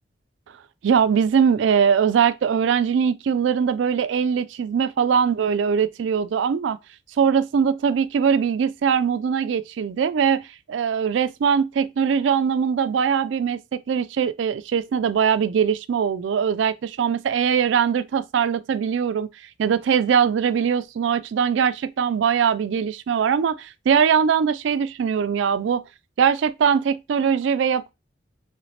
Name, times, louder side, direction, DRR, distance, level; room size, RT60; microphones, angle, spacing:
voice 1, 0.8-6.8 7.2-10.4 10.7-19.3 19.6-25.8 26.2-27.9, right 7 dB, 75° right, 0.3 m, -21 dB
4.1 x 3.2 x 3.2 m
head